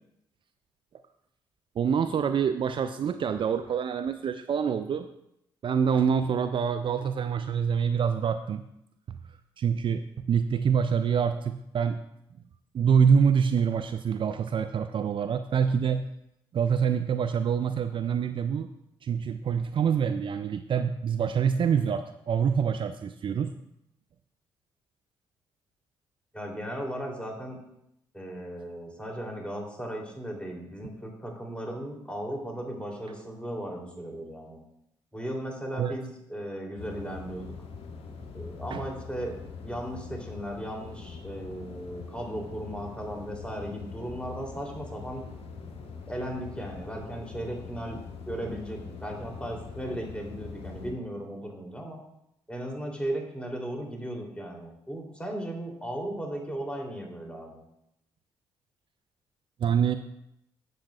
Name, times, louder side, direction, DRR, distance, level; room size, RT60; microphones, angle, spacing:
voice 1, 1.8-5.1 5.6-8.6 9.6-12.0 12.7-16.0 16.5-18.7 19.0-23.5 35.8-35.9 38.7-38.8 59.6-60.0, right 7 dB, 45° right, 10 dB, 0.5 m, -26 dB
voice 2, 26.3-27.6 28.1-34.6 35.1-37.5 38.3-45.2 46.1-48.0 48.3-52.0 52.5-57.6, right 1 dB, 10° left, 0 dB, 3.1 m, -36 dB
sound 1, 36.8-50.9, left 5 dB, 55° left, 1.3 m, -43 dB
12.0 x 7.5 x 2.4 m, 0.79 s
hypercardioid pair, 45°, 12 cm